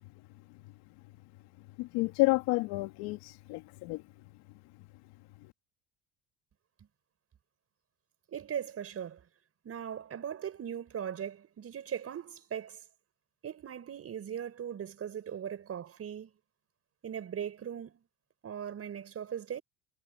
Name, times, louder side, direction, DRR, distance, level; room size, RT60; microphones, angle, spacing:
voice 1, 1.8-4.0 5.4-5.5, left 22 dB, 80° left, 2.8 m, -30 dB
voice 2, 8.3-9.2 9.6-12.8 13.4-16.3 17.0-18.0 18.4-19.6, right 8 dB, 40° right, 5.7 m, -39 dB
cardioid pair, 115°, 38 cm